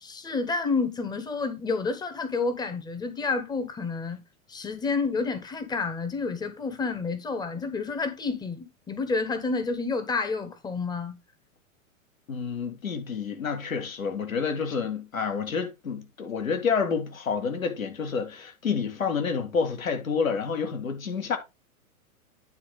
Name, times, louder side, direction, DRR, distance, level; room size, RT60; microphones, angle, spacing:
voice 1, 0.0-4.2 4.5-11.2, left 4 dB, 10° left, 1.1 m, -29 dB
voice 2, 12.3-21.4, left 5 dB, 70° left, 2.2 m, -29 dB
9.6 x 4.3 x 5.0 m
figure-of-eight pair, 100°, 42 cm